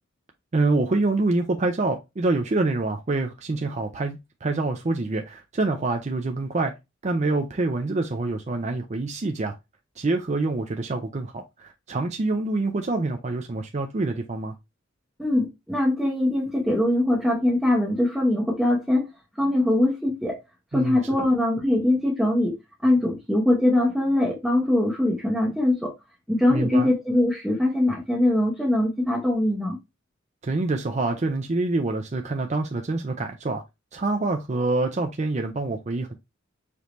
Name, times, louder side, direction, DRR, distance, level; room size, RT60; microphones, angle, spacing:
voice 1, 0.5-6.7 7.0-9.5 10.0-14.6 20.7-21.3 26.5-26.9 30.4-33.6 33.9-36.1, right 2 dB, 35° right, 0.5 m, -26 dB
voice 2, 15.2-19.1 19.4-20.4 20.7-22.6 22.8-25.9 26.3-29.8, left 1 dB, ahead, 0.9 m, -22 dB
5.0 x 2.8 x 3.0 m
head